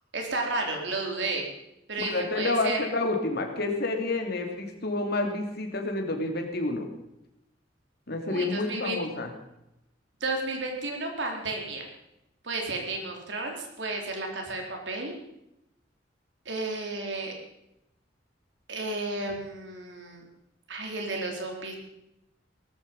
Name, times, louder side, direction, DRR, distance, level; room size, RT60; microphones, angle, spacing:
voice 1, 0.1-1.4 1.9-2.8 8.3-9.0 10.2-11.8 12.4-15.1 16.5-17.3 18.7-20.2 20.7-21.8, right 2 dB, 70° right, 2 dB, 4.0 m, -32 dB
voice 2, 2.0-6.9 8.1-9.3, left 2 dB, 60° left, 3 dB, 2.9 m, -29 dB
18.5 x 14.0 x 5.4 m, 0.84 s
head